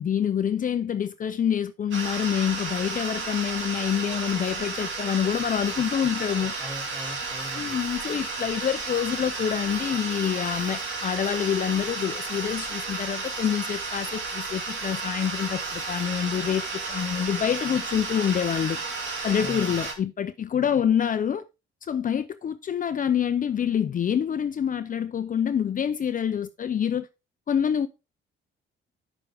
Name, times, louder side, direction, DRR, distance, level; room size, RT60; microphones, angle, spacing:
voice 1, 0.0-6.5 7.6-18.8 19.2-21.4 21.9-27.1 27.5-27.9, left 8 dB, 45° left, 0.6 m, -26 dB
sound 1, 1.9-19.9, right 3 dB, 70° right, 2.6 m, -32 dB
voice 2, 5.9-7.9 19.3-19.9 20.5-20.9, equal, 20° right, 3.1 m, -42 dB
8.0 x 6.9 x 3.5 m
cardioid pair, 90°, 20 cm